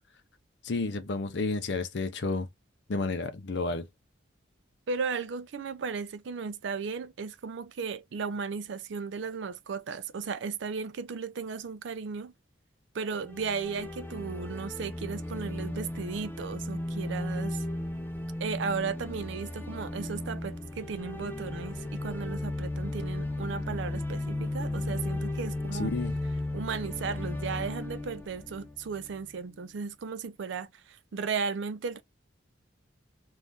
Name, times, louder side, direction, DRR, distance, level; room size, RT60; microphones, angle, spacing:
voice 1, 0.6-2.5 2.9-3.9 25.8-26.1, left 3 dB, 65° left, 0.6 m, -31 dB
voice 2, 4.9-12.3 12.9-17.6 18.4-25.9 26.5-32.0, right 5 dB, 65° right, 0.4 m, -35 dB
sound 1, 13.2-29.3, left 1 dB, 10° left, 0.4 m, -35 dB
2.6 x 2.4 x 3.4 m
head